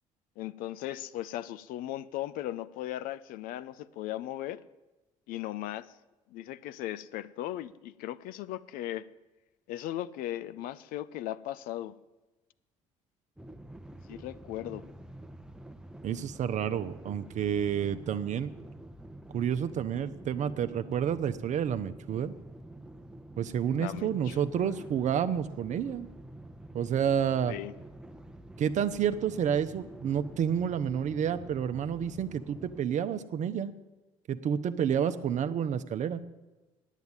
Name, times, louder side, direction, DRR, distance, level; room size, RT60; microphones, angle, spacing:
voice 1, 0.4-4.6 5.3-6.0 6.3-9.1 9.7-12.0 14.1-14.8 23.8-24.8 27.5-27.7, left 13 dB, 60° left, 0.5 m, -37 dB
sound 1, 13.4-32.8, right 1 dB, 5° right, 0.8 m, -48 dB
voice 2, 16.0-18.5 19.3-22.3 23.4-26.1 26.7-27.5 28.6-33.7 34.3-36.2, right 8 dB, 50° right, 0.7 m, -29 dB
9.4 x 8.2 x 9.0 m
hypercardioid pair, 55°, 16 cm